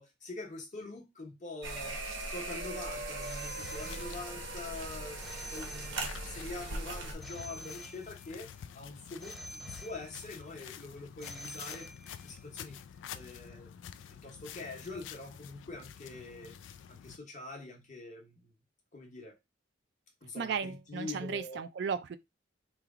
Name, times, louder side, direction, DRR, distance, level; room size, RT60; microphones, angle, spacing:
voice 1, 0.0-2.0 2.3-5.2 5.4-8.5 8.7-11.9 12.2-12.8 13.1-13.7 14.1-16.6 16.9-18.5 18.9-19.3 20.2-21.6, left 3 dB, 40° left, 1.0 m, -44 dB
sound 1, 1.6-7.1, right 2 dB, 90° right, 1.0 m, -39 dB
Telephone, 3.2-4.5 5.2-6.5 7.2-8.5 9.2-10.5 11.2-12.5, equal, ahead, 0.6 m, -49 dB
sound 2, 3.6-17.2, left 8 dB, 85° left, 0.3 m, -49 dB
voice 2, 20.4-22.2, right 6 dB, 65° right, 0.3 m, -35 dB
3.2 x 2.3 x 3.5 m
head